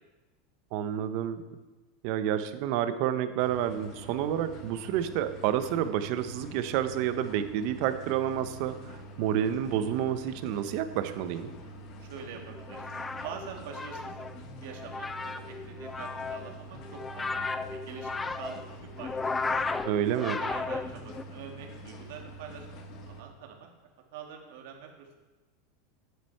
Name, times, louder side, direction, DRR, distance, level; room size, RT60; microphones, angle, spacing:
voice 1, 0.7-1.4 2.0-11.5 19.8-20.4, right 10 dB, 50° right, 11 dB, 0.7 m, -29 dB
sound 1, 3.4-23.2, right 1 dB, 40° left, 1.1 m, -46 dB
voice 2, 11.6-14.3 14.6-18.6 19.0-19.5 20.0-23.7 24.1-25.2, right 7 dB, 70° right, 2 dB, 1.8 m, -45 dB
sound 2, 12.5-21.2, left 4 dB, 10° left, 0.3 m, -35 dB
9.5 x 7.8 x 4.5 m, 1.2 s
supercardioid pair, 160°, 0 cm